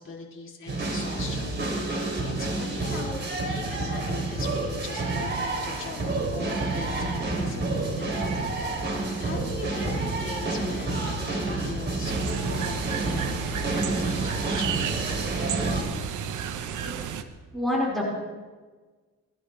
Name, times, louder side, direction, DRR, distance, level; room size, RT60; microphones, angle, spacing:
voice 1, 0.0-1.6 2.2-8.8 9.2-15.2, left 4 dB, 40° left, -2 dB, 3.4 m, -41 dB
sound 1, 0.7-15.8, right 2 dB, 35° right, 3.2 m, -29 dB
sound 2, 12.0-17.2, right 8 dB, 80° right, 1.0 m, -33 dB
voice 2, 17.5-18.0, left 1 dB, ahead, -5 dB, 4.8 m, -26 dB
21.5 x 11.5 x 3.3 m, 1.4 s
cardioid pair, 90°, 30 cm